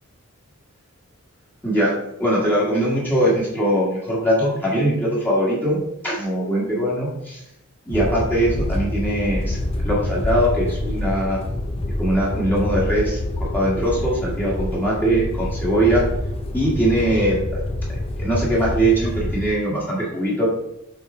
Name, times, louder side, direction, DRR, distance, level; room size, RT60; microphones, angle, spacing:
voice 1, 1.6-1.9 2.2-7.4 7.9-9.6 9.8-11.4 12.0-16.0 16.5-17.6 18.2-20.5, right 1 dB, 10° left, -6 dB, 1.5 m, -21 dB
sound 1, 7.9-19.5, left 1 dB, 25° left, 0.5 m, -26 dB
6.8 x 3.7 x 4.3 m, 0.84 s
head